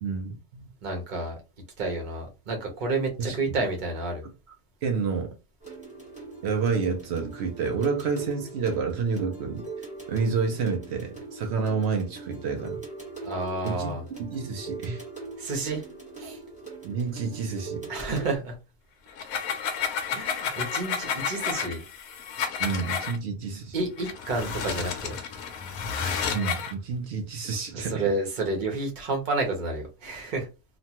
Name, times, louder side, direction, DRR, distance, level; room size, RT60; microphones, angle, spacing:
voice 1, 0.0-0.7 3.2-3.6 4.8-5.3 6.4-9.7 10.1-12.8 13.6-13.9 14.2-15.0 16.8-17.8 22.6-23.8 26.3-28.1, right 5 dB, 90° right, 0.5 m, -29 dB
voice 2, 0.8-1.3 1.8-4.2 13.2-14.0 15.4-15.8 16.2-16.4 17.9-18.6 20.1-21.8 23.7-25.2 27.7-30.5, right 3 dB, 45° right, 0.7 m, -30 dB
sound 1, 5.6-18.4, right 3 dB, 5° right, 0.9 m, -41 dB
sound 2, 19.1-23.2 24.0-26.7, left 7 dB, 65° left, 1.0 m, -31 dB
3.0 x 2.1 x 2.8 m
omnidirectional pair, 1.8 m